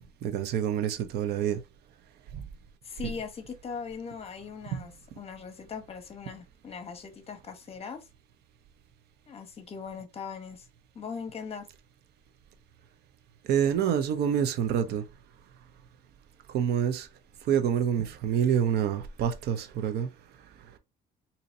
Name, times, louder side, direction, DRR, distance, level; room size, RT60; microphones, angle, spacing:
voice 1, 0.2-1.6 2.3-2.4 4.7-4.9 13.5-15.0 16.5-17.1 17.5-20.1, right 8 dB, 75° right, 0.7 m, -27 dB
voice 2, 2.8-8.1 9.3-10.7 10.9-11.7, left 6 dB, 35° left, 1.0 m, -40 dB
4.1 x 2.8 x 2.6 m
cardioid pair, 110°, 17 cm